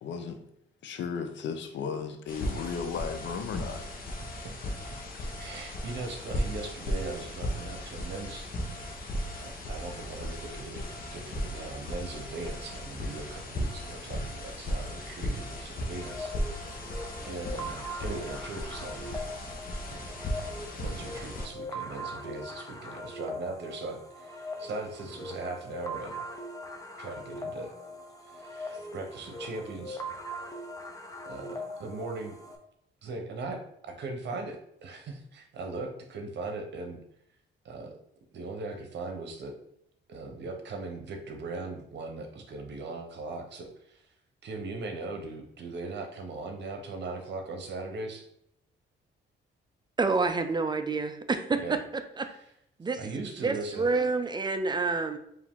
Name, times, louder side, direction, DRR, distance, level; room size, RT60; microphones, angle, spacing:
voice 1, 0.0-0.4 0.8-3.9 5.2-5.3 5.6-5.7, left 6 dB, 70° left, 8 dB, 0.6 m, -35 dB
sound 1, 2.3-21.5, equal, 45° left, 1.0 m, -36 dB
voice 2, 5.4-8.5 8.8-8.9 9.4-10.8 11.1-17.0 17.2-19.2 19.9-20.1 20.8-26.1 27.0-27.7 28.3-30.0 31.3-32.4 33.0-33.6 33.9-37.0 37.6-37.9 38.3-39.5 40.1-44.1 44.4-48.3 51.6-51.8 52.3-52.4 53.0-53.9, right 3 dB, 60° right, 5 dB, 0.9 m, -39 dB
sound 2, 16.0-32.6, equal, 15° left, 0.7 m, -41 dB
voice 3, 50.0-51.8 52.2-52.3 52.8-55.2, right 4 dB, 20° right, 8 dB, 0.5 m, -28 dB
4.7 x 2.7 x 3.6 m, 0.74 s
cardioid pair, 90°, 20 cm